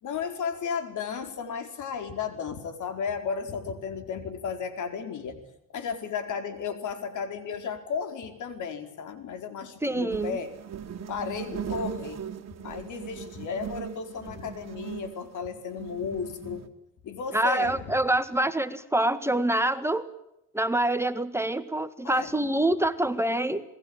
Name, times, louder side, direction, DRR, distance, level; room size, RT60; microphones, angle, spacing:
voice 1, 0.0-5.4 5.7-10.5 11.1-12.2 12.6-16.6 17.0-17.9 22.0-22.3, left 6 dB, 70° left, 7 dB, 4.7 m, -34 dB
voice 2, 9.8-10.4 17.3-20.1 20.5-23.6, right 1 dB, 10° right, 10 dB, 1.7 m, -26 dB
sound 1, 10.1-16.7, right 8 dB, 55° right, 2.8 m, -39 dB
27.5 x 20.5 x 8.9 m, 0.83 s
cardioid pair, 95°, 32 cm